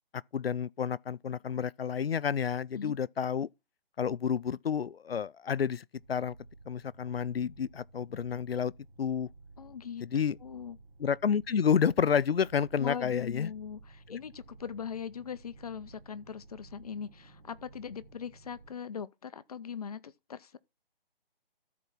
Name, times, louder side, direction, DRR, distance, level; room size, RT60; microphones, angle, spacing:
voice 1, 0.3-3.5 4.0-6.3 6.7-8.7 9.0-9.3 10.0-10.4 11.0-13.5 14.1-14.2, left 7 dB, 90° left, 0.5 m, -30 dB
sound 1, 5.9-18.7, right 3 dB, 75° right, 3.0 m, -55 dB
voice 2, 9.6-10.0 10.4-10.8 12.8-20.6, left 7 dB, 40° left, 0.6 m, -40 dB
13.0 x 4.6 x 5.6 m
figure-of-eight pair, 145°, 29 cm